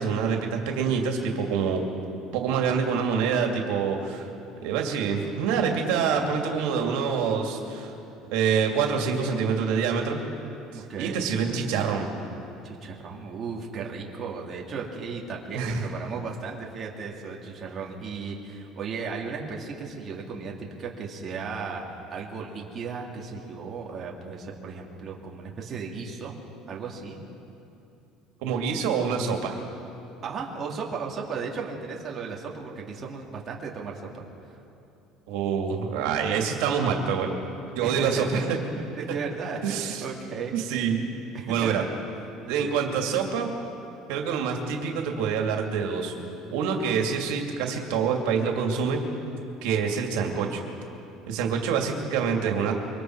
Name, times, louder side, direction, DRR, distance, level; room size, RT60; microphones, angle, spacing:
voice 1, 0.0-1.8 2.3-4.3 4.6-7.9 8.3-10.2 10.7-12.1 15.5-15.8 28.4-29.6 35.3-37.3 37.7-38.6 39.6-40.1 40.5-41.1 41.5-41.8 42.5-43.5 44.1-46.1 46.5-49.0 49.6-50.6 51.3-52.7, right 6 dB, 85° right, 2 dB, 2.5 m, -26 dB
voice 2, 10.7-11.2 12.6-26.3 26.7-27.2 30.2-34.3 37.8-38.4 38.7-40.5 41.3-41.7 42.4-42.8 49.9-50.3, right 5 dB, 30° right, -2 dB, 2.4 m, -35 dB
26.0 x 23.5 x 4.7 m, 2.8 s
cardioid pair, 160°, 0 cm